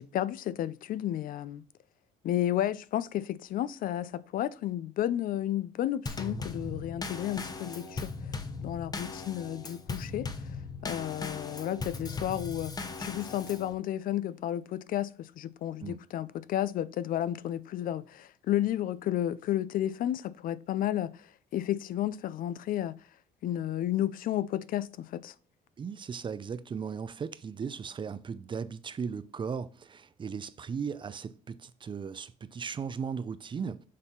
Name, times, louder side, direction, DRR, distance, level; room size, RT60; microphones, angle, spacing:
voice 1, 0.0-1.6 2.2-8.1 8.6-10.3 10.8-12.7 13.0-23.0 23.4-25.3, left 12 dB, 55° left, 0.4 m, -32 dB
Drum kit / Snare drum / Bass drum, 6.1-13.7, left 3 dB, 25° left, 0.9 m, -38 dB
voice 2, 25.8-33.8, right 6 dB, 30° right, 0.5 m, -37 dB
6.5 x 3.6 x 5.7 m
cardioid pair, 110°, 17 cm